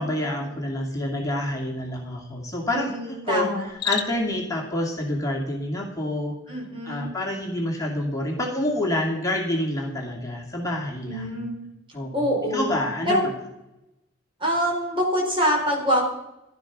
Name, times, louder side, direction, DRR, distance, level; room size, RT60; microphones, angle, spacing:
voice 1, 0.0-11.4 11.9-13.2, left 1 dB, 20° left, -1 dB, 2.4 m, -28 dB
voice 2, 2.7-3.6 6.5-7.1 11.1-11.6 12.1-12.7 13.1-13.2 14.4-16.0, equal, 30° right, -1 dB, 4.7 m, -25 dB
Cricket, 3.6-4.4, left 12 dB, 60° left, 1.3 m, -30 dB
15.5 x 11.5 x 6.1 m, 0.90 s
head